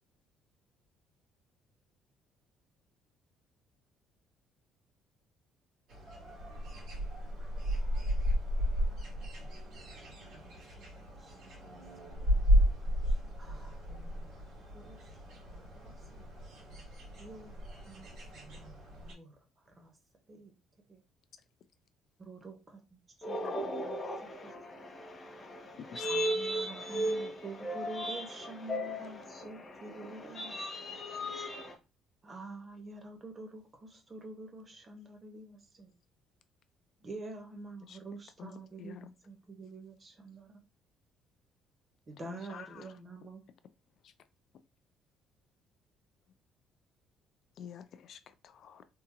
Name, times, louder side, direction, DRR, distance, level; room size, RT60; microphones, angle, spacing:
sound 1, 5.9-19.1, equal, 70° right, 2.0 m, -33 dB
voice 1, 10.3-10.9 11.2-11.6 13.4-14.5 14.7-15.1 15.5-16.2 17.2-18.1 18.3-18.8 19.0-19.4 19.6-19.9 20.3-20.5 20.9-21.0 22.2-23.0 23.3-23.5 23.8-24.0 26.0-30.6 32.2-35.9 37.0-40.5 42.1-43.4, right 3 dB, 20° right, 0.8 m, -47 dB
voice 2, 23.2-31.8, equal, 20° left, 0.9 m, -37 dB
voice 3, 38.8-39.1 42.2-42.8 47.6-48.8, left 8 dB, 45° left, 0.4 m, -48 dB
3.5 x 2.8 x 2.8 m
cardioid pair, 170°, 0 cm